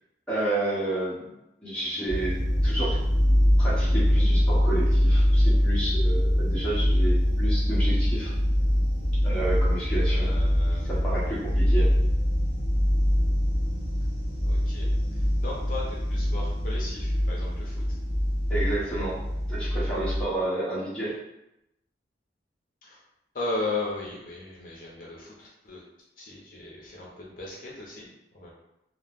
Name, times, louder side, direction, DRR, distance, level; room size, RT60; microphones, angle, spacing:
voice 1, 0.3-1.3 1.6-3.0 3.6-8.3 9.2-10.3 10.9-11.9 18.5-21.2, right 2 dB, 5° left, -9 dB, 0.8 m, -31 dB
sound 1, 2.1-20.2, equal, 30° right, 0.7 m, -23 dB
voice 2, 10.1-10.9 14.4-14.9 15.1-18.0 22.8-23.0 23.3-25.8 26.2-28.5, left 2 dB, 50° left, -4 dB, 0.6 m, -36 dB
2.3 x 2.1 x 3.4 m, 0.85 s
head